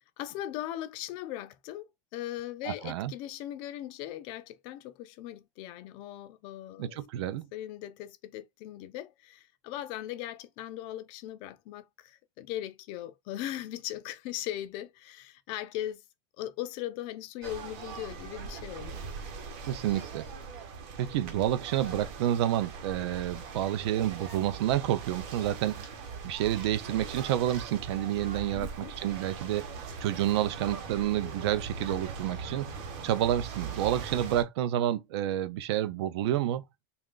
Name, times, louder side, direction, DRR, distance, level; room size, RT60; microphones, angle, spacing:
voice 1, 0.2-7.0 7.5-16.0 16.4-19.0 28.5-29.0, left 13 dB, 35° left, 0.3 m, -39 dB
voice 2, 2.6-3.1 6.8-7.5 19.7-20.3 21.0-25.9 26.2-29.7 30.0-32.8 33.0-36.6, right 12 dB, 60° right, 0.5 m, -29 dB
sound 1, 17.4-34.4, right 5 dB, 40° right, 1.0 m, -41 dB
3.2 x 2.4 x 3.7 m
supercardioid pair, 175°, 15 cm